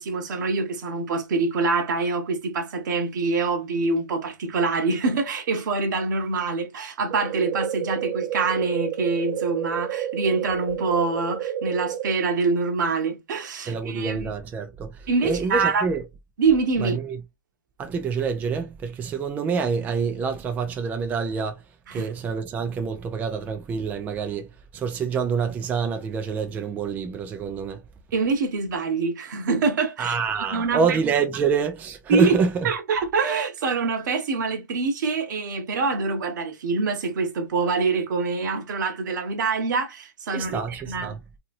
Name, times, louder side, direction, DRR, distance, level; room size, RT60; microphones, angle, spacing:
voice 1, 0.0-14.3 15.1-15.9 16.4-17.0 21.9-22.1 28.1-30.1 30.5-31.0 32.1-32.4 32.6-40.6 40.9-41.1, right 4 dB, 70° right, 1.0 m, -25 dB
sound 1, 7.1-12.1, right 10 dB, 50° right, 0.7 m, -30 dB
voice 2, 13.7-16.0 16.8-17.2 17.8-21.6 21.9-27.8 30.0-32.7 40.3-41.2, right 5 dB, 15° right, 0.4 m, -27 dB
2.9 x 2.8 x 2.5 m
hypercardioid pair, 135°, 11 cm